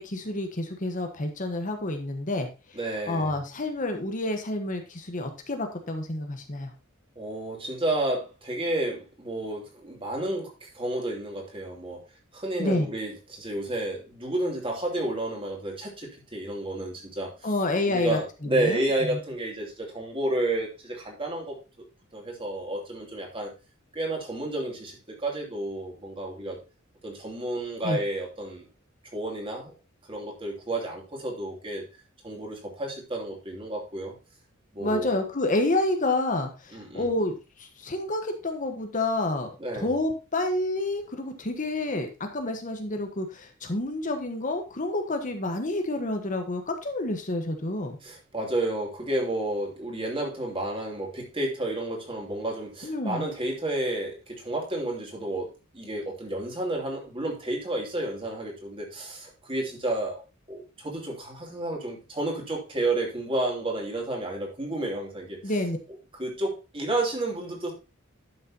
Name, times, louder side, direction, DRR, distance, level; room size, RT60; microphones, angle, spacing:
voice 1, 0.0-2.5 3.1-6.7 12.6-12.9 17.4-18.8 27.8-28.0 34.8-48.0 52.8-53.3 65.4-65.8, left 2 dB, 40° left, 5 dB, 1.2 m, -29 dB
voice 2, 2.8-3.4 7.2-12.0 12.3-17.3 17.9-21.9 22.1-23.5 23.9-26.6 27.0-28.7 29.1-29.7 30.1-31.8 32.2-34.1 34.7-35.3 36.7-37.1 39.6-39.9 48.0-55.5 55.7-60.2 60.5-65.4 66.1-67.7, right 1 dB, 25° right, 0 dB, 2.9 m, -31 dB
11.5 x 6.6 x 2.8 m, 0.29 s
head